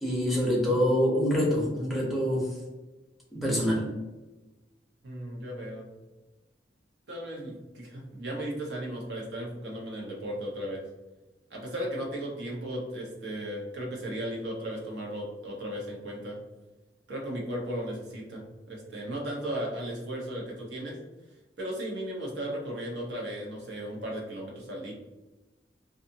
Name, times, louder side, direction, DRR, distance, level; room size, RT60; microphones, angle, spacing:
voice 1, 0.0-2.5 3.3-3.8, equal, ahead, -4 dB, 0.6 m, -25 dB
voice 2, 5.0-5.8 7.1-10.8 11.5-16.4 17.1-21.0 21.6-24.9, right 1 dB, 65° right, -2 dB, 0.9 m, -36 dB
2.6 x 2.4 x 2.7 m, 1.1 s
head